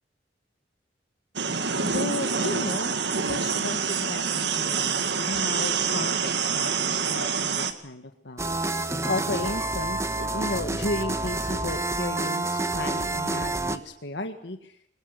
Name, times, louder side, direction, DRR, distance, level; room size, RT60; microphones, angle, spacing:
sound 1, 1.4-7.7, right 6 dB, 75° right, 1.9 m, -26 dB
voice 1, 1.8-14.8, left 2 dB, 75° left, 6 dB, 1.8 m, -34 dB
sound 2, 8.4-13.8, right 2 dB, 15° right, 1.3 m, -28 dB
23.0 x 19.5 x 8.2 m, 0.71 s
head